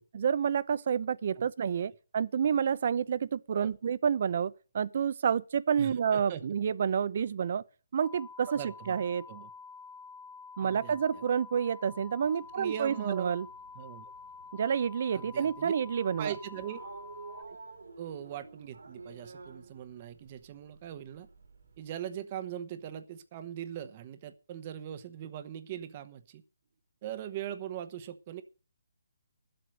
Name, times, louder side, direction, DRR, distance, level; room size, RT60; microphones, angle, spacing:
voice 1, 0.1-7.6 7.9-8.6 8.9-9.2 10.6-13.4 14.5-16.3, right 7 dB, 45° right, 0.6 m, -29 dB
voice 2, 5.8-6.4 8.5-9.5 10.6-11.2 12.5-13.3 13.7-14.1 15.1-15.7 16.2-16.8 18.0-21.3 21.8-26.4 27.0-28.4, right 10 dB, 25° right, 0.9 m, -41 dB
sound 1, 8.0-17.4, left 4 dB, 5° left, 0.6 m, -48 dB
sound 2, 12.0-21.8, right 4 dB, 80° right, 3.1 m, -52 dB
12.0 x 7.9 x 6.5 m
hypercardioid pair, 170°, 0 cm